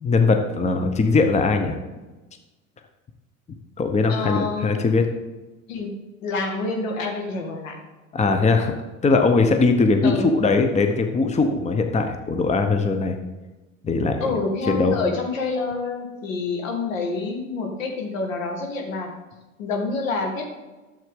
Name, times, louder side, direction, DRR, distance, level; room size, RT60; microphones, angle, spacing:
voice 1, 0.0-1.8 3.8-5.0 8.1-8.7 9.0-13.2 13.8-14.3 14.7-15.0, left 3 dB, 15° left, 6 dB, 0.9 m, -20 dB
voice 2, 4.1-4.8 5.7-5.9 6.2-7.8 10.0-10.2 14.2-19.1 19.6-20.5, left 3 dB, 70° left, 2 dB, 2.0 m, -27 dB
12.0 x 7.3 x 3.8 m, 1.2 s
figure-of-eight pair, 75°, 41 cm